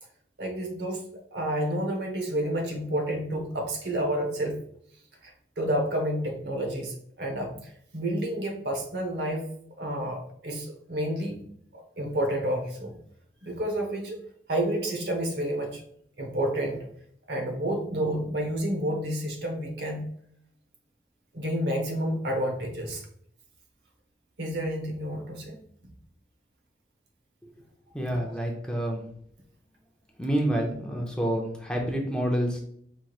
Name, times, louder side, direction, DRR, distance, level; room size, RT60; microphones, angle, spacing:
voice 1, 0.4-1.0 1.3-4.6 5.6-9.4 9.8-11.4 11.7-12.9 13.4-14.2 14.5-15.8 16.2-16.9 17.3-20.1 21.3-23.0 24.4-25.6, right 1 dB, 70° right, 3 dB, 0.8 m, -30 dB
voice 2, 27.9-29.0 30.2-32.6, equal, 5° left, 0 dB, 0.5 m, -28 dB
4.5 x 3.0 x 2.4 m, 0.65 s
head